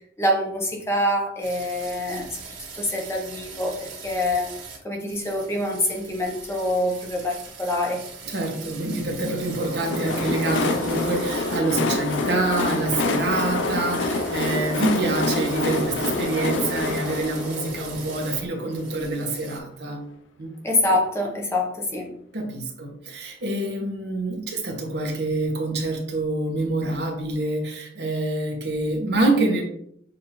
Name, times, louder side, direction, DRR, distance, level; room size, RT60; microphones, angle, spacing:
voice 1, 0.2-2.4 2.7-4.5 4.8-8.0 20.6-22.1, left 1 dB, 15° left, -1 dB, 0.8 m, -25 dB
sound 1, 1.4-4.8 5.1-11.6 11.9-18.4 18.7-19.6, right 5 dB, 80° right, 1.7 m, -41 dB
voice 2, 8.3-20.0 20.4-20.5 22.3-29.6, right 2 dB, 60° right, 1 dB, 1.0 m, -26 dB
Train, 9.4-19.1, left 3 dB, 90° left, 0.5 m, -27 dB
6.5 x 2.6 x 2.9 m, 0.70 s
head